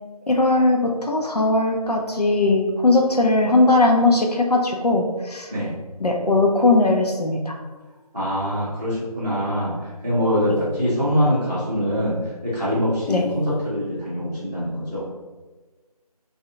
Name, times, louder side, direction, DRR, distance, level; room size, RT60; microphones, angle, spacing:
voice 1, 0.3-5.5 6.0-7.5 13.1-13.2, left 2 dB, 75° left, 1 dB, 0.8 m, -19 dB
voice 2, 8.1-15.1, equal, 5° right, -23 dB, 1.4 m, -24 dB
3.3 x 2.7 x 3.8 m, 1.3 s
figure-of-eight pair, 175°, 20 cm